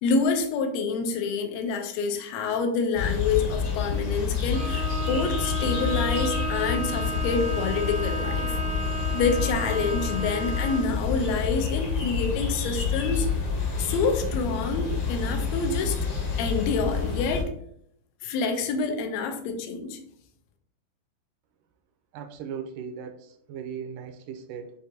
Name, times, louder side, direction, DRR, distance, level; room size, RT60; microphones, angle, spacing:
voice 1, 0.0-8.6 9.1-13.3 13.8-16.0 16.4-17.5 18.2-20.0, left 4 dB, 80° left, 5 dB, 1.5 m, -27 dB
sound 1, 2.9-17.4, left 6 dB, 60° left, 1.5 m, -28 dB
Bowed string instrument, 4.5-11.0, right 2 dB, 10° right, 0.5 m, -33 dB
voice 2, 22.1-24.7, right 7 dB, 80° right, 6 dB, 2.1 m, -38 dB
7.6 x 2.6 x 2.7 m, 0.69 s
omnidirectional pair, 3.8 m